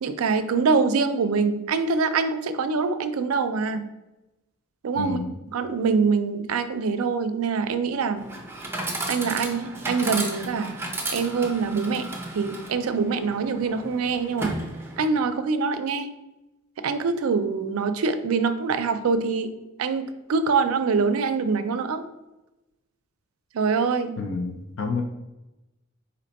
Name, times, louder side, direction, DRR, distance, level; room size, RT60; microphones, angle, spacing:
voice 1, 0.0-3.9 4.8-5.2 5.5-8.3 9.1-14.6 15.0-16.1 16.8-19.5 19.8-22.1 23.5-24.2, right 4 dB, 85° right, 10 dB, 0.4 m, -24 dB
voice 2, 4.9-5.3 24.2-25.0, left 4 dB, 65° left, 4 dB, 0.5 m, -29 dB
Chatter / Coin (dropping), 8.2-15.2, right 2 dB, 10° right, 0.6 m, -34 dB
4.2 x 2.9 x 4.0 m, 1.0 s
head